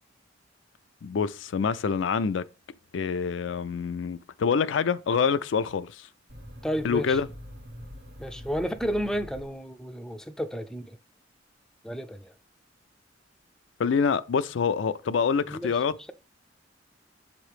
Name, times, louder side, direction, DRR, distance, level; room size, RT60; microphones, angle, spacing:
voice 1, 1.0-2.4 2.9-6.1 6.8-7.3 13.8-15.9, left 6 dB, 75° left, 0.4 m, -26 dB
sound 1, 6.3-10.0, equal, 60° right, 1.4 m, -44 dB
voice 2, 6.6-7.2 8.2-11.0 11.8-12.3 15.4-15.7, equal, 5° left, 0.4 m, -32 dB
7.3 x 3.0 x 4.8 m
head